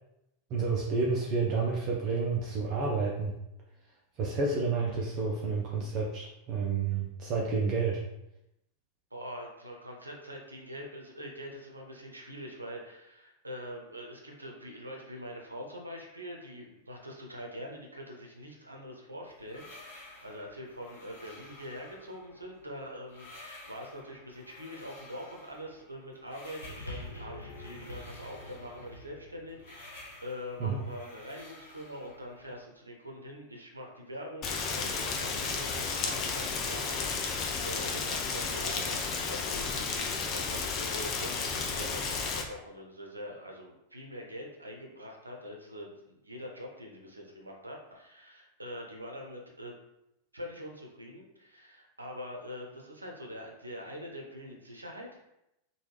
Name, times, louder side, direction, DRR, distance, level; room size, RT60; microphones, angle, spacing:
voice 1, 0.5-3.3 4.2-8.0 30.6-30.8, right 4 dB, 40° right, -3 dB, 0.5 m, -30 dB
voice 2, 9.1-49.8 50.3-55.3, equal, 80° right, 0 dB, 0.6 m, -44 dB
sound 1, 19.3-32.6, left 2 dB, 55° left, 0.8 m, -53 dB
sound 2, 26.6-31.2 32.0-32.1, left 1 dB, 85° left, 0.5 m, -46 dB
Rain, 34.4-42.4, left 4 dB, 35° left, 0.4 m, -32 dB
3.1 x 2.2 x 3.2 m, 0.86 s
figure-of-eight pair, 90°, 0 cm